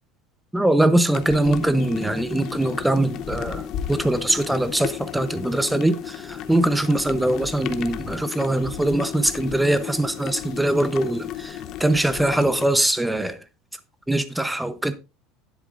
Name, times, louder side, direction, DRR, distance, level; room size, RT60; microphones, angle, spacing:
voice 1, 0.5-13.4 14.1-14.9, right 1 dB, 5° right, 0.7 m, -22 dB
sound 1, 1.1-12.7, left 10 dB, 40° left, 0.7 m, -34 dB
12.0 x 10.5 x 2.5 m
cardioid pair, 170°, 0 cm